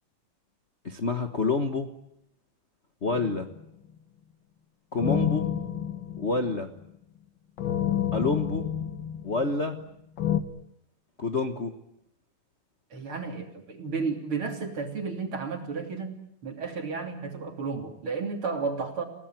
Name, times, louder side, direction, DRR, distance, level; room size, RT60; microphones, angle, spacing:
voice 1, 0.8-1.9 3.0-3.5 4.9-5.5 6.2-6.7 8.1-8.7 9.2-9.8 11.2-11.8, left 3 dB, 70° left, 4 dB, 0.6 m, -27 dB
sound 1, 3.1-3.7 5.0-6.8 7.6-9.8 10.2-10.4, left 10 dB, 55° left, 1.4 m, -29 dB
voice 2, 12.9-16.1 16.4-19.0, right 4 dB, 40° right, 3 dB, 3.9 m, -32 dB
29.5 x 18.0 x 9.2 m, 0.76 s
omnidirectional pair, 3.6 m